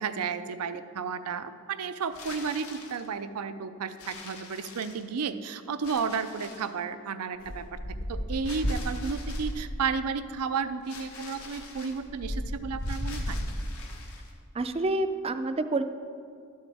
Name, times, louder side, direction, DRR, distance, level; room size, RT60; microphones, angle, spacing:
voice 1, 0.0-7.8 8.1-13.4, right 5 dB, 85° right, 12 dB, 0.5 m, -32 dB
sound 1, 2.0-3.1 4.0-5.3 5.8-6.8 8.4-9.6 10.8-12.0 12.8-14.3, left 4 dB, 70° left, 1.3 m, -46 dB
sound 2, 7.4-10.0 11.0-11.1 11.3-14.0, equal, 40° left, 0.8 m, -34 dB
voice 2, 14.5-15.8, right 2 dB, 25° right, 9 dB, 0.4 m, -28 dB
12.5 x 7.9 x 3.5 m, 2.2 s
head